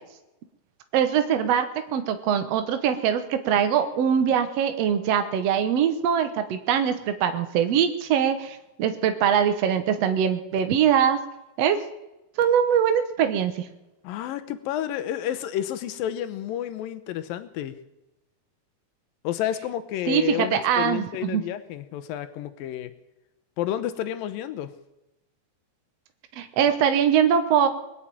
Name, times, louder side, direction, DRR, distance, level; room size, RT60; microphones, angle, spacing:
voice 1, 0.9-11.2 11.6-11.8 12.4-13.6 20.1-21.4 26.4-27.7, right 8 dB, 85° right, 8 dB, 1.4 m, -22 dB
voice 2, 14.0-17.8 19.2-22.9 23.6-24.7, left 11 dB, 75° left, 12 dB, 2.4 m, -30 dB
21.5 x 7.4 x 9.1 m, 0.96 s
omnidirectional pair, 4.4 m